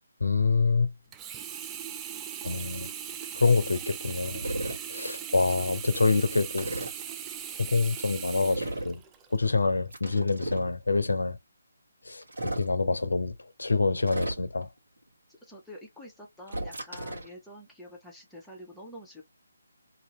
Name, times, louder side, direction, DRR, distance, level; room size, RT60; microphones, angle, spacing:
voice 1, 0.2-0.9 2.4-2.9 3.3-4.5 4.9-6.7 7.6-9.0 9.3-11.4 12.1-14.7, left 4 dB, 70° left, 0.7 m, -26 dB
Sink (filling or washing), 1.1-9.4 9.9-10.0, right 9 dB, 15° right, 0.3 m, -39 dB
sound 1, 4.4-4.8 6.6-6.9 8.5-9.0 9.9-10.7 12.2-12.7 14.0-14.6 16.5-17.3, right 1 dB, 65° right, 1.2 m, -34 dB
voice 2, 15.3-19.2, left 1 dB, ahead, 0.9 m, -47 dB
2.7 x 2.7 x 3.0 m
figure-of-eight pair, 150°, 0 cm